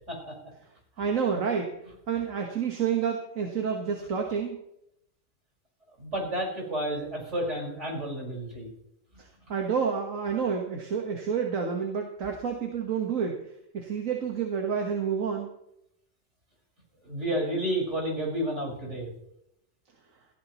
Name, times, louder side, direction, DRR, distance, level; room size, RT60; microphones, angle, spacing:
voice 1, 1.0-1.8 2.1-4.6 9.2-13.5 13.7-15.5, right 6 dB, 85° right, 1 dB, 1.9 m, -29 dB
voice 2, 6.0-8.7 17.0-19.1, right 1 dB, 65° right, -2 dB, 5.9 m, -31 dB
18.5 x 15.0 x 3.1 m, 0.78 s
omnidirectional pair, 1.3 m